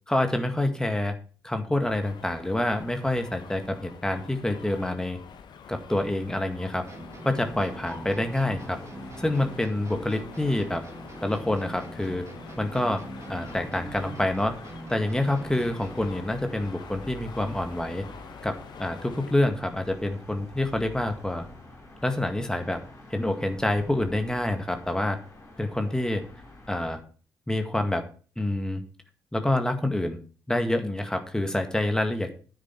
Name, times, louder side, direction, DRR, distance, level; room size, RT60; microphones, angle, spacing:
voice 1, 0.1-1.1 1.4-5.2 5.7-6.8 7.2-8.8 9.2-10.8 11.2-12.3 12.6-14.5 14.9-18.0 18.4-21.5 22.0-22.8 23.1-25.2 25.6-26.3 26.7-27.0 27.5-28.0 28.4-28.8 29.3-30.2 30.5-32.3, left 1 dB, 5° left, 6 dB, 1.9 m, -27 dB
sound 1, 1.8-19.4, left 6 dB, 50° left, 1.1 m, -46 dB
sound 2, 6.9-16.3, right 2 dB, 30° right, 2.0 m, -43 dB
sound 3, 7.4-27.0, left 1 dB, 35° left, 4.9 m, -47 dB
9.6 x 9.2 x 4.6 m, 0.39 s
figure-of-eight pair, 40°, 10 cm